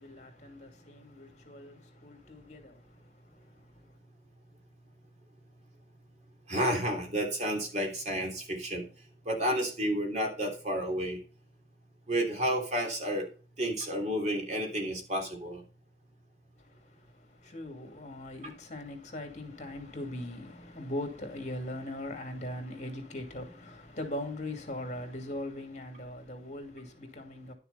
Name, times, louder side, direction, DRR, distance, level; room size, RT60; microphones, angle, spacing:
voice 1, 0.0-4.0 16.6-27.5, left 1 dB, 40° left, 2.6 m, -41 dB
voice 2, 6.5-8.8 9.3-11.2 12.1-13.3 13.6-15.6, equal, 40° right, 3.1 m, -31 dB
11.0 x 6.9 x 4.1 m
head